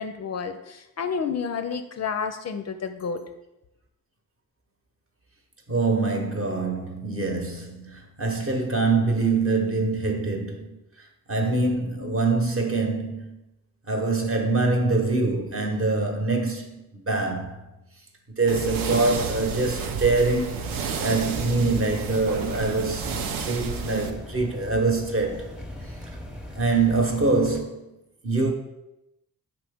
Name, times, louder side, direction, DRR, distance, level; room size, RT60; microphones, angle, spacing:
voice 1, 0.0-3.2, left 6 dB, 50° left, 0.4 m, -30 dB
voice 2, 5.7-10.7 11.3-13.3 13.9-17.6 18.4-25.5 26.6-27.9 28.2-28.5, right 3 dB, 35° right, 0.9 m, -24 dB
sound 1, 18.5-24.1, right 6 dB, 70° right, 0.5 m, -31 dB
sound 2, 20.5-27.6, left 1 dB, ahead, 0.7 m, -39 dB
5.0 x 2.9 x 3.4 m
cardioid pair, 55°, 36 cm